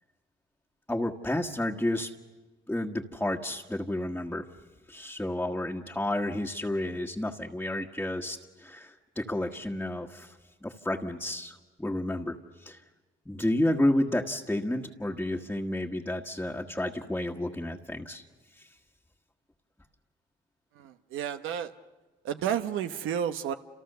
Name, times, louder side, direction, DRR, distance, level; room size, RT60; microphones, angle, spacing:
voice 1, 0.9-2.1 2.7-4.5 4.9-12.8 13.2-18.2 18.5-18.7, left 1 dB, 5° left, -1 dB, 1.5 m, -31 dB
voice 2, 20.7-21.7 22.2-23.5, right 9 dB, 90° right, 8 dB, 1.0 m, -31 dB
29.5 x 28.5 x 6.8 m, 1.3 s
cardioid pair, 90°, 20 cm